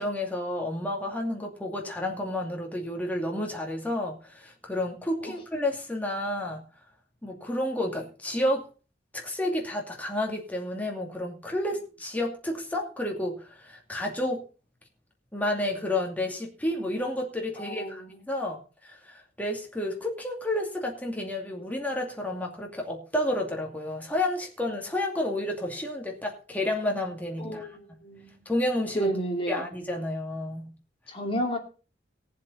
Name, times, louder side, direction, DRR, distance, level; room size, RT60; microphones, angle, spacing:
voice 1, 0.0-6.6 7.2-8.7 9.1-14.4 15.3-27.7 28.5-29.1 29.5-30.7, left 1 dB, 10° left, 0 dB, 2.5 m, -31 dB
voice 2, 17.6-18.2 27.4-28.4 28.9-29.7 31.1-31.6, right 1 dB, 30° left, 1 dB, 2.6 m, -31 dB
18.5 x 7.5 x 4.2 m, 0.34 s
head